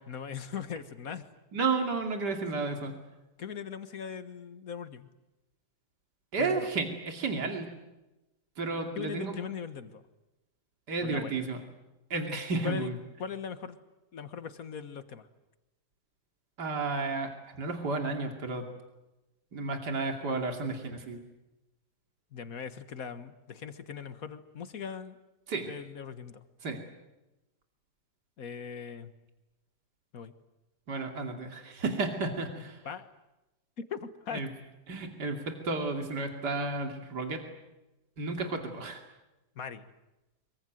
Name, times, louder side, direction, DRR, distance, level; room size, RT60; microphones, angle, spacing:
voice 1, 0.1-1.3 3.4-5.1 6.4-6.7 9.0-10.0 11.0-11.4 12.6-12.9 13.2-13.8 14.1-15.3 22.3-25.2 25.6-26.5 28.4-29.1 30.1-30.3 32.8-33.1 33.8-34.4 39.6-39.9, left 7 dB, 55° left, 11 dB, 1.8 m, -40 dB
voice 2, 1.5-3.0 6.3-7.7 8.6-9.4 10.9-11.6 12.1-12.9 16.6-17.3 17.6-18.6 19.5-21.2 25.5-25.7 26.6-26.8 30.9-32.8 34.3-34.5 34.9-37.4 38.2-39.0, right 3 dB, 75° right, 4 dB, 3.2 m, -32 dB
25.5 x 23.0 x 9.3 m, 1.0 s
omnidirectional pair, 1.8 m